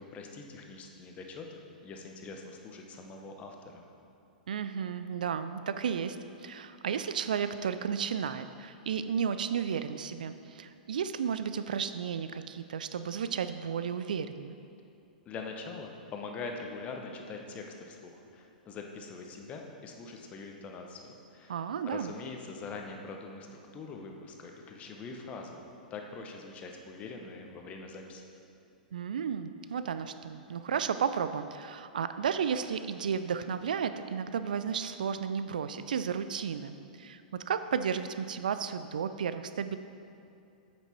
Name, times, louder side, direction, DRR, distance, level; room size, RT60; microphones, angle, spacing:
voice 1, 0.0-3.8 15.3-21.6 21.8-25.6 25.9-28.2, left 4 dB, 25° left, 2 dB, 1.0 m, -43 dB
voice 2, 4.5-14.5 21.5-22.1 28.9-39.8, right 7 dB, 70° right, 11 dB, 0.3 m, -33 dB
8.1 x 6.1 x 4.4 m, 2.6 s
figure-of-eight pair, 100°, 5 cm